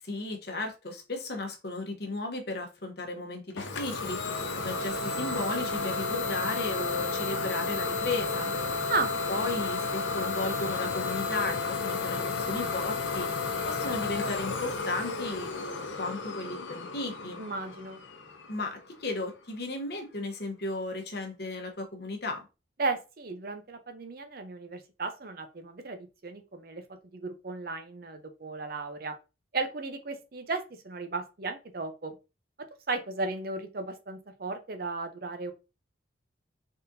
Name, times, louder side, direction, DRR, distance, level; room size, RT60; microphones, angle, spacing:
voice 1, 0.0-4.2 4.6-8.5 9.3-13.3 13.6-15.5 16.0-17.4 18.5-22.5, left 2 dB, 55° left, 1.0 m, -35 dB
Idling / Domestic sounds home sounds, 3.6-19.1, left 4 dB, 75° left, 0.6 m, -32 dB
voice 2, 17.4-18.0 22.8-26.8 27.1-29.2 29.5-32.1 32.9-35.5, right 3 dB, 50° right, 0.6 m, -35 dB
4.1 x 3.6 x 2.6 m
head